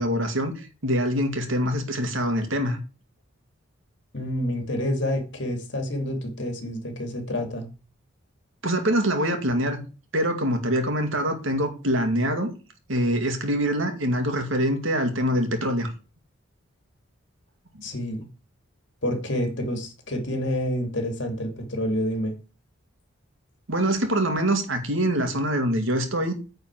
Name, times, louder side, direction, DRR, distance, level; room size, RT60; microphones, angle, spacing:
voice 1, 0.0-2.8 8.6-9.8 10.1-12.5 12.9-15.9 17.7-17.8 23.7-26.4, equal, 70° right, 2.1 m, -24 dB
voice 2, 4.1-7.7 17.8-18.3 19.0-22.3, left 1 dB, 55° left, 2.6 m, -28 dB
9.5 x 4.4 x 7.5 m
head